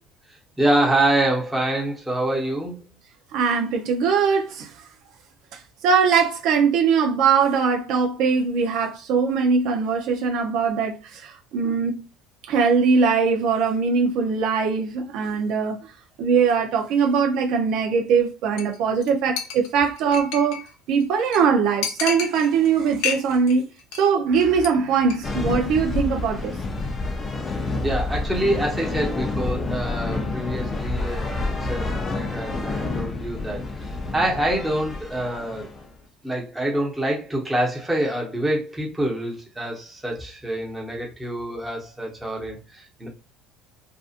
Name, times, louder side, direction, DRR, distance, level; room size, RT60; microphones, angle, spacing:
voice 1, 0.6-2.8 27.8-35.7 36.2-43.1, right 1 dB, 5° right, 0.9 m, -26 dB
voice 2, 3.3-4.7 5.8-12.0 12.5-15.8 16.2-20.6 20.9-23.6 24.0-26.5, right 5 dB, 60° right, 0.5 m, -21 dB
Chink clink, 18.6-18.8 19.0-19.1 19.4-20.7 21.0-21.1 21.3-21.4 21.8-22.7 23.0-23.5 23.8-24.1 24.4-24.7 25.0-25.2, left 7 dB, 70° left, 0.6 m, -30 dB
sound 1, 25.2-35.9, left 2 dB, 20° left, 0.4 m, -28 dB
2.6 x 2.4 x 2.4 m
cardioid pair, 155°, 0 cm